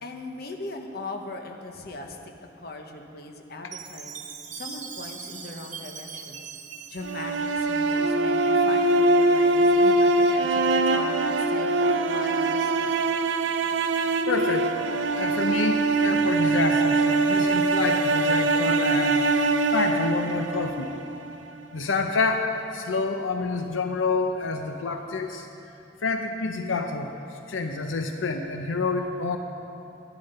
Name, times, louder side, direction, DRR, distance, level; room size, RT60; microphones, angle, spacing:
voice 1, 0.0-2.3 2.6-4.2 4.5-6.4 6.9-10.6 10.9-12.9, left 2 dB, 55° left, 4 dB, 1.0 m, -39 dB
Chime, 3.7-8.1, right 6 dB, 40° right, 1.0 m, -41 dB
sound 1, 7.0-21.2, right 2 dB, 75° right, 0.6 m, -23 dB
voice 2, 14.3-14.7 15.1-19.4 19.7-20.9 21.7-25.5 26.0-27.1 27.5-29.4, left 3 dB, 90° left, 5 dB, 0.7 m, -28 dB
11.5 x 11.0 x 5.5 m, 2.8 s
head